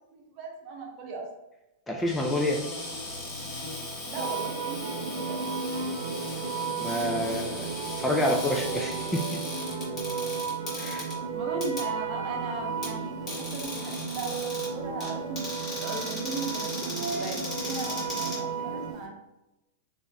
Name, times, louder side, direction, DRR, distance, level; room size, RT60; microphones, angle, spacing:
voice 1, 0.1-1.3 4.1-5.5 11.3-19.1, right 3 dB, 45° right, 1 dB, 0.8 m, -38 dB
voice 2, 1.9-2.6 6.8-7.7 8.0-9.2 10.8-11.1, left 1 dB, 10° left, 1 dB, 0.3 m, -28 dB
Cupboard open or close, 2.0-19.0, left 1 dB, 30° left, 1.5 m, -38 dB
sound 1, 4.2-18.9, right 5 dB, 75° right, 0.4 m, -34 dB
3.1 x 2.5 x 2.2 m, 0.93 s
hypercardioid pair, 120°, 0 cm